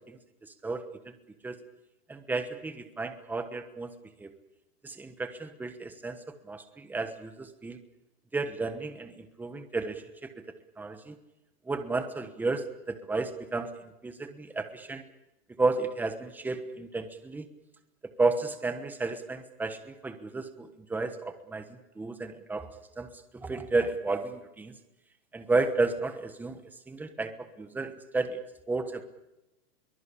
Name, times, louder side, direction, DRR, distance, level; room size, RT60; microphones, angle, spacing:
voice 1, 0.6-1.1 1.4-1.6 2.1-3.9 4.2-4.3 4.8-6.2 6.5-7.8 8.3-10.3 10.8-11.1 11.7-13.7 14.0-15.0 15.6-17.5 18.2-22.7 23.0-23.1 23.3-24.7 25.3-26.6 26.9-28.4 28.7-29.0, right 3 dB, 5° right, 8 dB, 1.1 m, -32 dB
23.0 x 20.5 x 8.6 m, 0.95 s
supercardioid pair, 155°, 46 cm